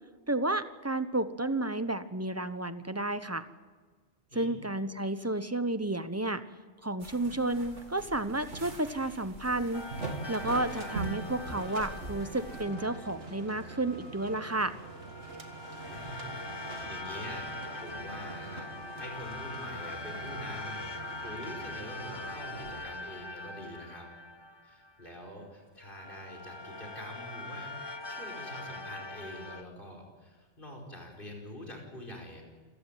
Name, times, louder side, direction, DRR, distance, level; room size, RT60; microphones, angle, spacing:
voice 1, 0.3-3.4 4.3-6.4 6.8-9.8 10.3-14.7, right 2 dB, 15° right, 12 dB, 0.9 m, -31 dB
voice 2, 4.3-4.6 10.7-10.9 15.8-18.7 19.0-20.9 21.2-24.1 24.6-27.7 28.1-32.4, left 1 dB, 45° left, 0 dB, 5.5 m, -45 dB
sound 1, 7.0-12.6, right 2 dB, 90° right, 3.3 m, -41 dB
sound 2, 9.7-13.9 14.8-25.3 25.8-29.6, left 2 dB, 25° left, 0.9 m, -42 dB
sound 3, 10.3-22.9, right 3 dB, 55° right, 2.1 m, -46 dB
28.0 x 15.5 x 9.2 m, 1.5 s
omnidirectional pair, 1.2 m